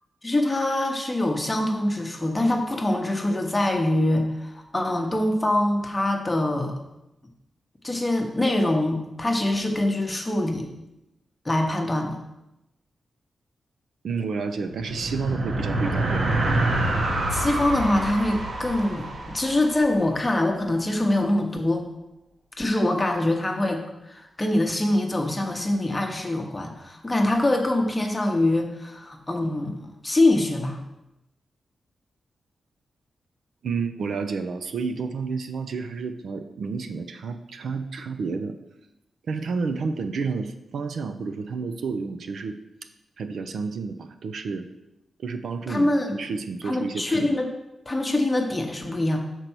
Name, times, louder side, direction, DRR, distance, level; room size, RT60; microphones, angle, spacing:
voice 1, 0.2-6.8 7.8-10.7 11.4-12.2 17.3-21.9 22.6-30.8 45.7-46.2 46.6-47.5 47.9-49.2, left 1 dB, 15° left, 3 dB, 0.9 m, -24 dB
voice 2, 14.0-16.3 33.6-38.6 39.3-42.6 43.2-44.7 45.2-45.9 46.2-47.3, right 4 dB, 70° right, 8 dB, 0.5 m, -30 dB
sound 1, 14.6-20.3, right 1 dB, 50° right, 1.1 m, -27 dB
6.7 x 4.4 x 6.1 m, 0.91 s
wide cardioid pair, 160°, 0 cm